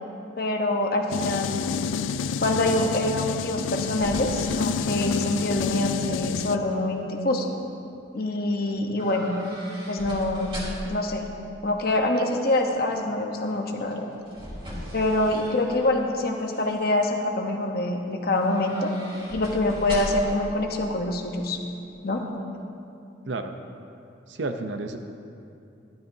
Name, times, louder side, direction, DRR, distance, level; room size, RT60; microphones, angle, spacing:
voice 1, 0.4-1.8 2.4-7.5 8.1-9.3 9.9-10.6 10.8-11.3 11.6-14.1 14.9-18.9 19.3-21.6 22.0-22.2, left 2 dB, 50° left, 2 dB, 0.9 m, -25 dB
sound 1, 1.1-6.6, left 6 dB, 80° left, 0.3 m, -29 dB
sound 2, 3.8-5.9 6.2-6.8 9.0-11.1 13.8-16.0 16.4-16.9 18.3-20.4 20.7-20.8, equal, 25° right, 2.7 m, -39 dB
voice 2, 24.3-25.0, right 2 dB, 65° right, 6 dB, 0.6 m, -31 dB
13.0 x 12.0 x 2.7 m, 2.6 s
head